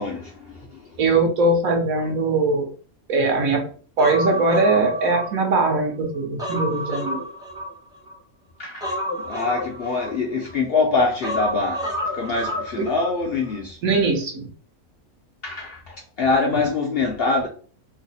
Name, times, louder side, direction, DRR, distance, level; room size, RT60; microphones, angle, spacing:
voice 1, 0.0-0.9 8.6-13.8 15.4-17.5, left 3 dB, 60° left, 0.6 m, -24 dB
voice 2, 1.0-2.7 3.1-3.6 4.0-7.2 12.8-12.9 13.8-14.5 16.5-16.6, right 3 dB, 70° right, 1.3 m, -21 dB
Human voice, 4.0-5.8 6.1-8.2 8.8-10.6 11.2-13.1 13.4-13.6, equal, 5° right, 0.4 m, -30 dB
3.1 x 2.0 x 3.9 m
omnidirectional pair, 1.5 m